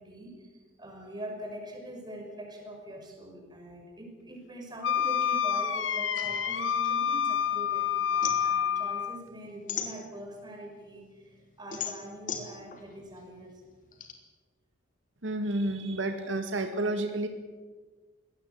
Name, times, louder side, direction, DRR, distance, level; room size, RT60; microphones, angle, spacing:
voice 1, 0.0-13.6, equal, 20° right, 1 dB, 5.9 m, -43 dB
Wind instrument woodwind instrument, 4.8-9.2, left 8 dB, 80° left, 1.4 m, -28 dB
sound 1, 6.2-7.7 8.0-10.5 11.0-14.1, left 7 dB, 45° left, 3.2 m, -38 dB
voice 2, 15.2-17.3, right 2 dB, 80° right, 6 dB, 2.0 m, -30 dB
22.5 x 18.0 x 8.5 m, 1.4 s
head